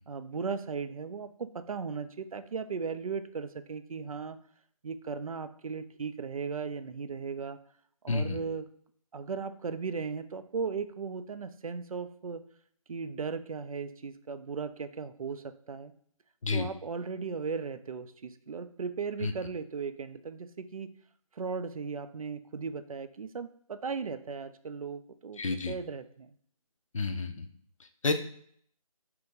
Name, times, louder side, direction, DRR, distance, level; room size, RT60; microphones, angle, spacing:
voice 1, 0.1-4.4 4.8-7.6 8.0-8.7 9.1-12.4 12.9-15.9 16.5-20.9 21.3-26.3, right 5 dB, 70° right, 11 dB, 0.4 m, -37 dB
voice 2, 8.1-8.4 16.4-16.7 19.2-19.3 25.4-25.7 26.9-27.5 27.8-28.1, left 3 dB, 60° left, 7 dB, 0.5 m, -30 dB
2.8 x 2.6 x 3.6 m, 0.62 s
figure-of-eight pair, 170°, 19 cm